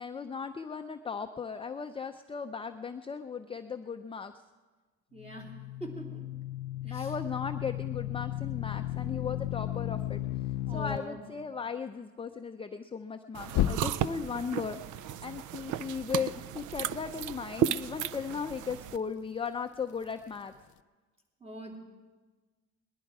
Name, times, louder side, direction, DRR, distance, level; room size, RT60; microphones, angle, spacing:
voice 1, 0.0-4.3 6.8-10.2 10.7-14.8 15.2-20.5, left 6 dB, 20° left, 7 dB, 0.5 m, -37 dB
voice 2, 5.1-5.5 5.8-6.3 6.9-7.1 10.7-11.2 21.4-21.8, right 1 dB, 20° right, -1 dB, 3.0 m, -42 dB
sound 1, 5.2-11.0 13.5-14.3, left 13 dB, 70° left, 0.5 m, -34 dB
sound 2, 13.3-19.0, right 10 dB, 85° right, 0.5 m, -34 dB
19.5 x 11.5 x 4.7 m, 1.3 s
cardioid pair, 90°, 30 cm